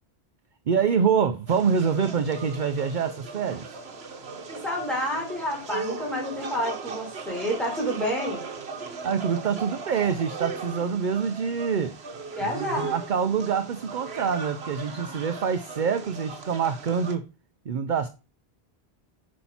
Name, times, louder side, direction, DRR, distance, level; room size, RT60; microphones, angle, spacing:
voice 1, 0.7-3.7 9.0-12.0 12.4-17.3 17.7-18.1, right 6 dB, 50° right, 0.8 m, -26 dB
sound 1, 1.5-17.2, right 4 dB, 70° right, 1.4 m, -38 dB
voice 2, 4.5-8.5 12.3-12.9, equal, ahead, 4.6 m, -29 dB
10.0 x 5.5 x 4.3 m
omnidirectional pair, 1.1 m